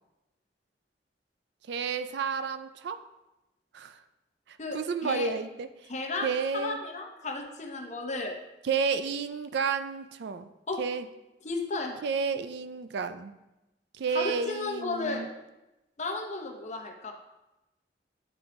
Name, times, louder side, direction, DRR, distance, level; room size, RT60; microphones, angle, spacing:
voice 1, 1.7-3.0 3.7-4.0 4.7-5.7 6.2-6.8 8.6-10.5 10.8-11.1 12.0-13.3 14.0-15.3, right 5 dB, 70° right, 11 dB, 0.4 m, -31 dB
voice 2, 4.6-5.3 5.9-8.4 10.7-10.8 11.4-12.0 14.1-15.3 16.0-17.1, left 3 dB, 40° left, 3 dB, 0.8 m, -34 dB
8.8 x 3.7 x 3.4 m, 0.97 s
head